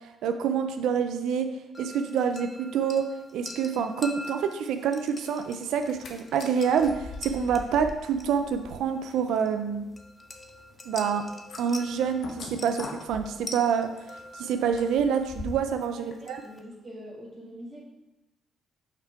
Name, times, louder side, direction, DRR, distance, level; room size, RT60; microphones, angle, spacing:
voice 1, 0.2-1.5 1.8-9.9 10.9-11.3 11.6-13.9 14.3-16.4, right 7 dB, 80° right, 8 dB, 0.4 m, -27 dB
sound 1, 1.7-16.6, left 2 dB, 25° left, 0.7 m, -45 dB
sound 2, 5.7-6.1 6.4-15.8 16.1-16.2, left 3 dB, 65° left, 0.9 m, -43 dB
voice 2, 15.9-17.8, equal, 5° right, -7 dB, 1.8 m, -44 dB
5.8 x 3.6 x 4.6 m, 0.96 s
cardioid pair, 90°, 0 cm